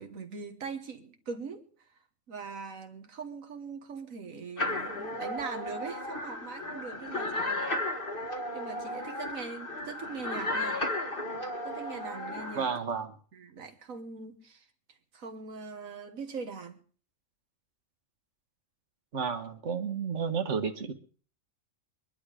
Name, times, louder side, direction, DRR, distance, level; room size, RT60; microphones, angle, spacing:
voice 1, 0.0-1.7 2.3-7.9 8.3-10.8 11.6-12.8 13.3-14.7 15.1-16.8, right 5 dB, 85° right, 1.8 m, -41 dB
sound 1, 4.6-12.8, left 1 dB, 40° left, 2.0 m, -34 dB
voice 2, 12.6-13.1 19.1-20.9, right 6 dB, 60° right, 1.7 m, -31 dB
23.0 x 11.0 x 5.0 m
omnidirectional pair, 1.4 m